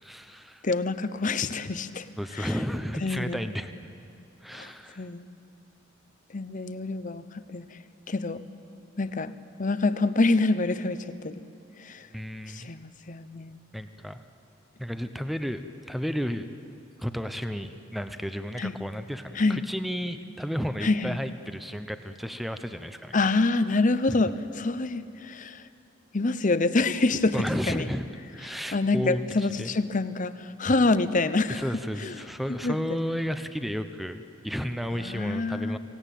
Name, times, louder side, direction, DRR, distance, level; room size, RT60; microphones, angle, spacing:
voice 1, 0.0-0.7 2.2-3.9 4.4-5.1 12.1-12.7 13.7-14.2 14.8-23.2 24.1-24.2 27.3-28.0 28.3-29.2 29.6-29.7 31.5-35.8, equal, ahead, 9 dB, 0.8 m, -33 dB
voice 2, 0.6-2.1 2.3-2.5 3.0-3.4 4.5-5.2 6.3-7.8 8.1-8.4 9.0-9.3 9.6-11.4 11.8-12.1 12.5-13.6 18.6-18.8 19.3-19.6 20.8-21.2 23.1-25.7 26.1-27.9 28.5-31.6 32.0-32.1 32.5-33.3 34.9-35.8, left 3 dB, 40° left, 13 dB, 0.8 m, -27 dB
25.0 x 17.0 x 9.2 m, 2.7 s
head